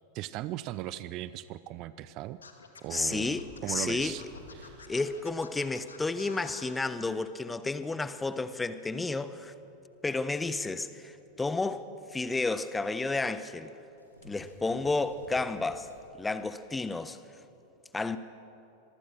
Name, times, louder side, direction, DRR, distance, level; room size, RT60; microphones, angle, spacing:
voice 1, 0.1-2.4 2.8-4.2 4.5-4.9, right 14 dB, 40° right, 16 dB, 0.6 m, -38 dB
Scratching (performance technique), 2.4-6.8, left 5 dB, 70° left, 2.3 m, -50 dB
voice 2, 2.9-4.2 4.9-9.5 10.0-13.7 14.2-15.9 16.2-17.2 17.9-18.2, left 3 dB, 10° left, 14 dB, 1.0 m, -31 dB
sound 1, 3.0-16.1, equal, 90° right, 4.2 m, -55 dB
25.5 x 23.0 x 6.5 m, 2.8 s
figure-of-eight pair, 90°, 0 cm